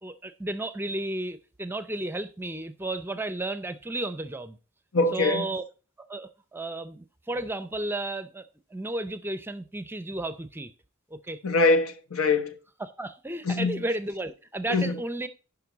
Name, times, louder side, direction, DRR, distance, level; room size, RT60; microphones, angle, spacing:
voice 1, 0.0-4.6 5.1-5.6 6.0-8.5 8.7-10.7 11.1-11.4 12.8-15.3, right 2 dB, 10° right, 0.5 m, -33 dB
voice 2, 4.9-5.5 11.4-12.5 13.5-13.8 14.7-14.9, left 3 dB, 85° left, 1.0 m, -23 dB
10.5 x 5.4 x 3.9 m
head